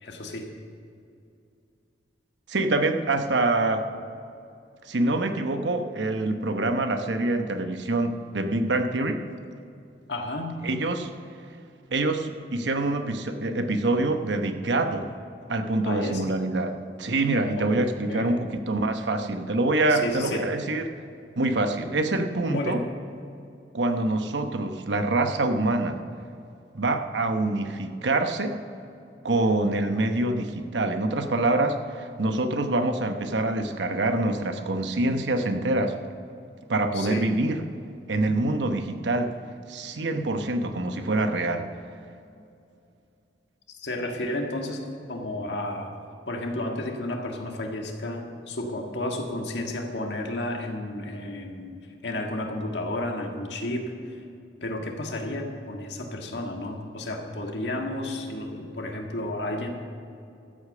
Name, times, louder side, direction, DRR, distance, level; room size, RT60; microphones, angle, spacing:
voice 1, 0.0-0.5 10.1-10.6 15.8-16.3 17.5-17.7 18.1-18.4 19.9-20.5 22.5-22.8 36.9-37.3 43.8-44.8 45.1-45.9 46.3-51.8 52.0-54.2 54.6-59.7, left 1 dB, 75° left, 2 dB, 1.7 m, -32 dB
voice 2, 2.5-3.8 4.8-9.2 10.6-11.1 11.9-15.1 15.5-20.9 21.4-22.8 23.7-26.0 26.7-28.6 29.2-35.9 36.7-37.6 38.1-39.4 39.7-41.7, right 2 dB, 80° right, 7 dB, 0.9 m, -25 dB
13.5 x 8.3 x 6.7 m, 2.5 s
head